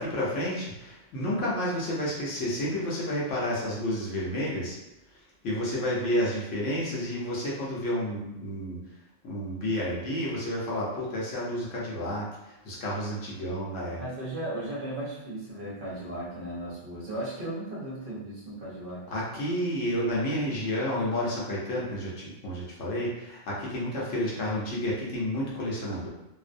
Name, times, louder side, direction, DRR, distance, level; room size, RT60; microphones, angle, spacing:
voice 1, 0.0-4.8 5.4-8.8 9.2-14.0 19.1-26.1, equal, 75° left, -5 dB, 1.0 m, -30 dB
voice 2, 14.0-19.0, right 1 dB, 55° right, -7 dB, 0.8 m, -36 dB
2.6 x 2.0 x 2.5 m, 0.92 s
omnidirectional pair, 1.3 m